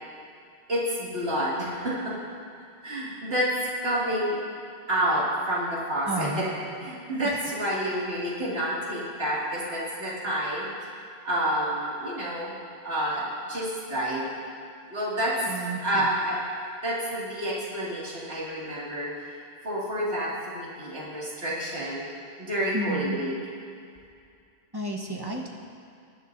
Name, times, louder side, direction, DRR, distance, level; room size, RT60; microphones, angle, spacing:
voice 1, 0.7-2.1 2.8-3.5 3.8-4.4 4.9-6.5 6.8-10.7 11.2-12.5 12.8-14.3 14.9-15.3 15.8-16.4 16.8-19.1 19.6-22.1 22.4-23.3, right 1 dB, 70° right, -7 dB, 2.7 m, -29 dB
voice 2, 6.1-6.5 15.5-15.8 22.7-23.2 24.7-25.5, right 1 dB, 25° right, -1 dB, 1.2 m, -31 dB
22.0 x 11.0 x 2.7 m, 2.4 s
omnidirectional pair, 1.1 m